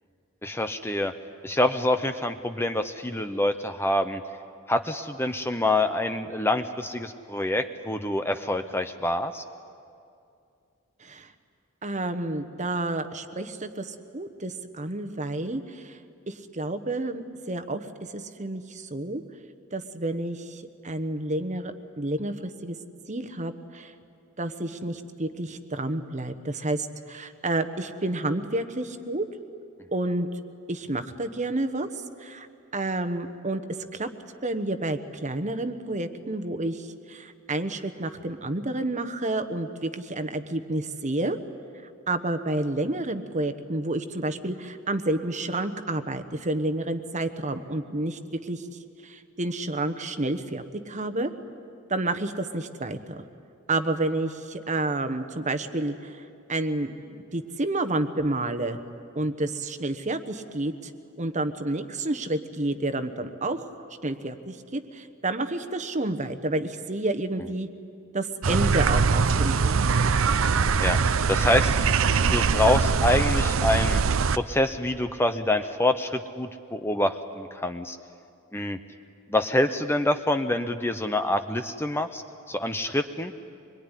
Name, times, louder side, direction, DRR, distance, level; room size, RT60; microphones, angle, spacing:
voice 1, 0.4-1.1 1.4-4.2 4.7-9.4 70.8-71.0 71.3-71.8 72.3-74.0 74.4-78.0 78.5-78.8 79.3-82.2 82.5-83.3, left 1 dB, 10° left, 8 dB, 0.7 m, -26 dB
voice 2, 11.0-11.3 11.8-16.0 16.3-17.8 18.1-19.2 19.7-22.8 23.1-23.9 24.4-29.2 29.9-30.3 30.7-31.9 32.2-32.5 32.7-33.6 33.9-34.1 34.4-41.4 42.1-48.7 49.0-51.3 51.9-53.2 53.7-56.2 56.5-58.8 59.1-60.9 61.2-63.7 64.0-67.7 68.1-69.8, right 2 dB, 35° right, 9 dB, 1.2 m, -30 dB
sound 1, 68.4-74.4, right 5 dB, 70° right, 0.6 m, -22 dB
25.0 x 22.0 x 10.0 m, 2.5 s
head